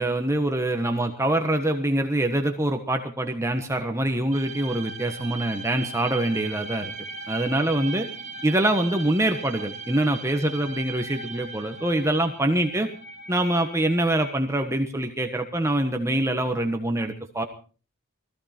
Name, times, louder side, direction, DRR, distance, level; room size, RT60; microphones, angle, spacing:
voice 1, 0.0-6.9 7.3-8.1 8.4-12.9 13.3-17.4, right 1 dB, 15° right, 5 dB, 1.3 m, -24 dB
sound 1, 4.3-14.4, right 3 dB, 35° right, 2.9 m, -38 dB
20.5 x 15.0 x 4.4 m, 0.39 s
head